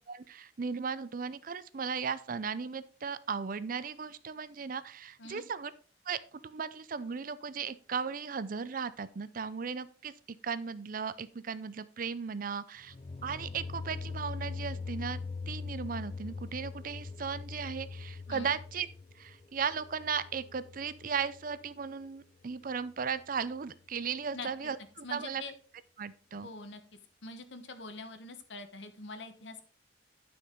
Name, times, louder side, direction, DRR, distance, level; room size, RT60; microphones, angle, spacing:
voice 1, 0.1-5.7 6.1-10.1 10.4-12.9 13.2-18.9 19.2-25.4 26.0-26.5, right 6 dB, 50° right, 16 dB, 0.5 m, -36 dB
sound 1, 12.8-21.7, left 4 dB, 30° left, 0.4 m, -42 dB
voice 2, 25.0-25.5 26.4-26.8 27.2-29.6, left 3 dB, 75° left, 9 dB, 1.2 m, -44 dB
10.5 x 6.2 x 3.8 m, 0.41 s
head